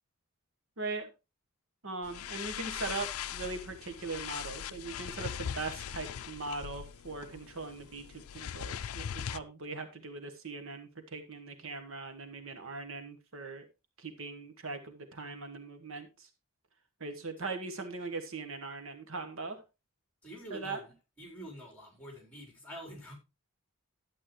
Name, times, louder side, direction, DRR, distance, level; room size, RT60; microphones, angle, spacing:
voice 1, 0.8-1.1 1.8-13.6 14.0-16.3 17.0-19.6 20.5-20.8, right 3 dB, 65° right, 8 dB, 1.3 m, -40 dB
sound 1, 2.0-9.4, left 9 dB, 75° left, 0.4 m, -40 dB
voice 2, 20.2-20.9 21.2-23.1, equal, 5° left, 1 dB, 3.7 m, -46 dB
11.5 x 8.4 x 3.1 m, 0.26 s
head